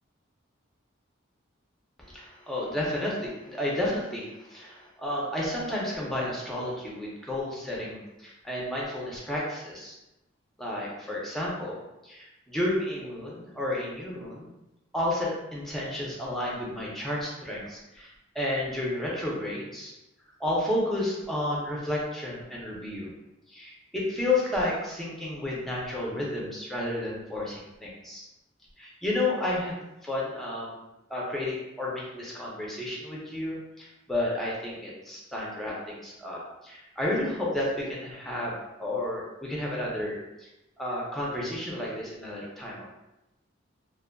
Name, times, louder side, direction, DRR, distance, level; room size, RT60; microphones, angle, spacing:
voice 1, 2.0-9.9 10.6-14.5 14.9-18.1 18.3-19.9 20.4-23.1 23.5-28.2 28.8-30.8 31.1-38.5 38.8-40.5 40.8-42.9, left 1 dB, ahead, -5 dB, 0.5 m, -31 dB
2.5 x 2.4 x 2.2 m, 0.95 s
head